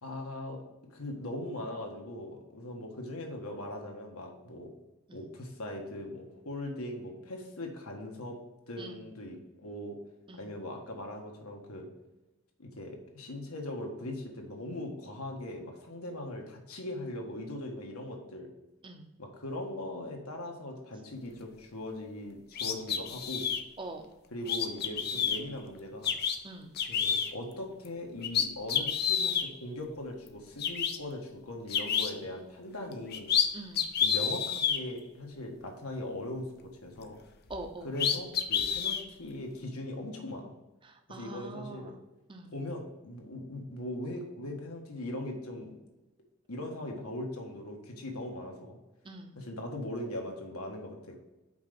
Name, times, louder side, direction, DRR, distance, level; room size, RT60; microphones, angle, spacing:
voice 1, 0.0-0.6 0.9-4.7 5.1-8.4 8.7-10.0 10.4-11.9 12.6-18.5 19.2-23.5 24.3-26.1 26.9-33.3 34.0-37.2 37.8-40.5 41.1-41.9 42.5-45.7 46.5-48.8 49.4-51.2, left 1 dB, 90° left, 1 dB, 1.7 m, -40 dB
sound 1, 22.5-23.6 24.5-25.4 26.0-26.4 26.8-27.3 27.8-27.9 28.2-29.5 30.3-30.4 30.6-31.0 31.7-32.1 32.9-33.5 33.7-34.8 37.5-37.6 38.0-39.0, left 7 dB, 45° left, 0.6 m, -29 dB
voice 2, 33.5-33.9 37.5-37.9 40.8-42.0 42.3-42.5 49.0-49.4, right 2 dB, 25° right, 5 dB, 0.8 m, -44 dB
5.9 x 5.2 x 5.9 m, 1.1 s
head